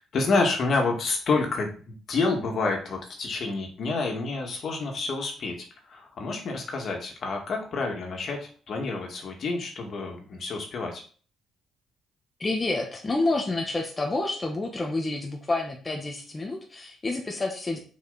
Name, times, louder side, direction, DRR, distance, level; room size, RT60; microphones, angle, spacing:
voice 1, 0.0-5.5 5.9-11.0, left 3 dB, 55° left, 2 dB, 2.1 m, -28 dB
voice 2, 12.4-17.8, left 2 dB, 25° left, 1 dB, 1.3 m, -29 dB
6.3 x 5.0 x 4.2 m, 0.41 s
cardioid pair, 90°, 0 cm